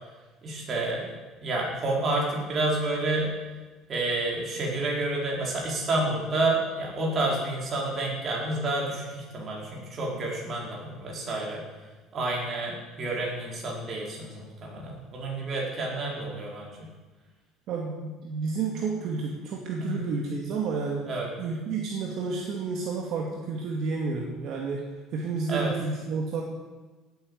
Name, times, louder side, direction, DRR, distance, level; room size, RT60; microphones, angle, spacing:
voice 1, 0.4-1.1 1.4-3.3 3.9-11.6 12.1-16.9 19.8-19.9 21.1-21.3 25.5-25.7, right 2 dB, 30° right, -2 dB, 4.9 m, -29 dB
voice 2, 17.7-21.1 21.4-24.8 25.1-26.4, right 4 dB, 50° right, -1 dB, 2.3 m, -30 dB
17.5 x 9.2 x 8.1 m, 1.3 s
cardioid pair, 160°, 0 cm